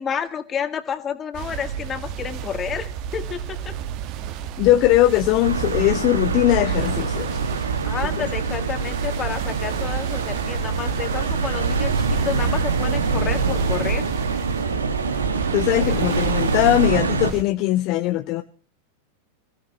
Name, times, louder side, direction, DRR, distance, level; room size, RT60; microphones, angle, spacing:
voice 1, 0.0-3.7 7.8-14.0, left 7 dB, 25° left, 9 dB, 1.9 m, -30 dB
sound 1, 1.3-17.4, right 9 dB, 40° right, 1.4 m, -32 dB
voice 2, 4.6-7.4 15.5-18.4, left 15 dB, 40° left, 9 dB, 0.8 m, -20 dB
sound 2, 5.4-17.3, right 4 dB, 75° right, 1.6 m, -24 dB
26.0 x 16.0 x 3.0 m, 0.36 s
figure-of-eight pair, 90°, 0 cm